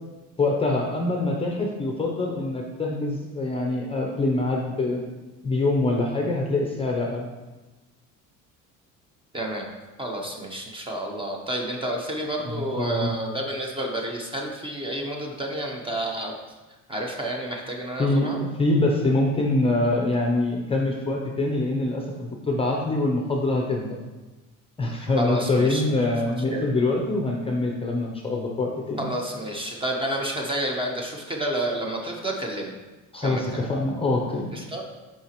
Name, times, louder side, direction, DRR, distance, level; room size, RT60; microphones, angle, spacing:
voice 1, 0.4-5.0 5.4-7.3 12.4-13.1 18.0-23.9 24.8-29.1 33.1-34.5, left 2 dB, 15° left, 0 dB, 0.6 m, -24 dB
voice 2, 9.3-9.7 10.0-16.3 16.9-18.4 25.2-26.0 26.5-26.7 29.0-32.7 33.2-33.7 34.5-34.8, right 1 dB, 15° right, 1 dB, 0.8 m, -30 dB
6.9 x 4.9 x 3.0 m, 1.2 s
cardioid pair, 130°, 34 cm